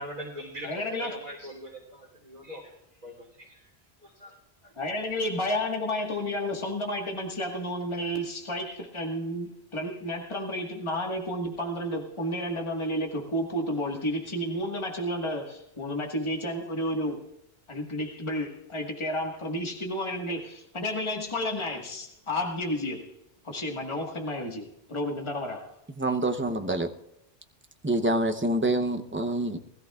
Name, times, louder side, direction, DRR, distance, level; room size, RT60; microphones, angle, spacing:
voice 1, 0.0-3.7 4.0-4.4 4.6-4.7, equal, 40° right, 3.3 m, -42 dB
voice 2, 0.6-1.2 4.8-17.2 17.7-23.1 23.4-25.7, left 1 dB, 30° left, 1.6 m, -31 dB
voice 3, 25.9-26.9 27.8-29.6, right 1 dB, 15° right, 0.6 m, -26 dB
20.0 x 14.0 x 2.4 m
omnidirectional pair, 1.1 m